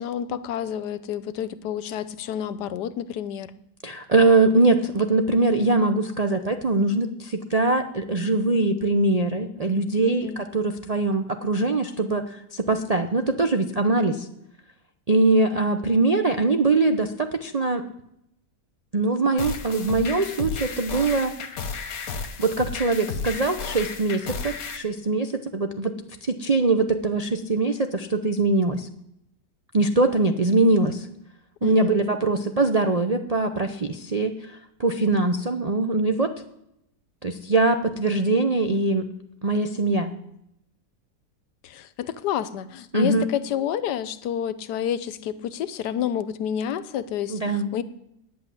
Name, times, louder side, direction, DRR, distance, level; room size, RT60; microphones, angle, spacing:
voice 1, 0.0-3.5 10.1-10.4 31.6-32.2 41.6-47.8, left 9 dB, 80° left, 15 dB, 1.3 m, -29 dB
voice 2, 3.8-14.3 15.1-17.8 18.9-21.3 22.4-26.0 26.2-28.9 29.7-31.1 31.6-36.3 37.2-39.1 39.4-40.1 42.9-43.3 47.3-47.7, right 2 dB, 50° right, 6 dB, 0.4 m, -22 dB
sound 1, 19.4-24.8, left 5 dB, 60° left, 1.5 m, -33 dB
9.5 x 8.4 x 9.6 m, 0.81 s
omnidirectional pair, 1.8 m